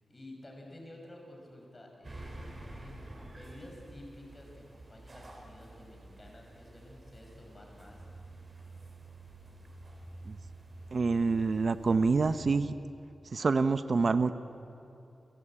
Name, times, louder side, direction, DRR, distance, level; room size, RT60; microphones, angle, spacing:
voice 1, 0.0-8.1, left 1 dB, 25° left, 0 dB, 6.0 m, -51 dB
sound 1, 2.0-12.4, right 2 dB, 30° right, 4.9 m, -49 dB
voice 2, 10.9-12.7 13.3-14.3, right 4 dB, 45° right, 11 dB, 0.7 m, -27 dB
29.5 x 22.5 x 8.8 m, 2.7 s
wide cardioid pair, 175°, 0 cm